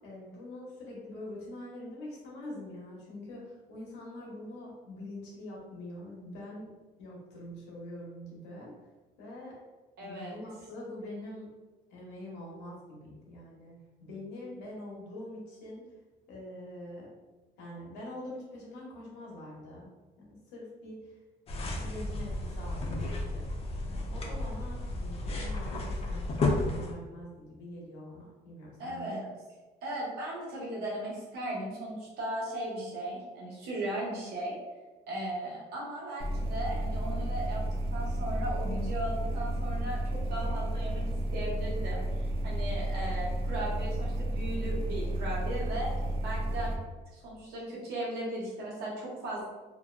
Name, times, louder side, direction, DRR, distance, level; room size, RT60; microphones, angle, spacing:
voice 1, 0.0-6.7 7.0-8.7 9.2-9.6 10.0-11.5 11.9-15.9 16.3-17.1 17.6-21.2 21.6-29.2, left 1 dB, 90° left, -4 dB, 0.8 m, -44 dB
voice 2, 10.0-10.4 28.8-29.2 29.8-34.6 35.1-37.6 37.9-41.0 41.3-45.9 46.2-46.7 47.1-49.4, right 1 dB, 75° right, -4 dB, 0.9 m, -37 dB
sound 1, 21.5-26.9, left 2 dB, 35° left, 0.4 m, -33 dB
sound 2, 36.2-46.8, right 1 dB, 35° right, 0.4 m, -32 dB
2.5 x 2.1 x 2.4 m, 1.2 s
cardioid pair, 110°, 17 cm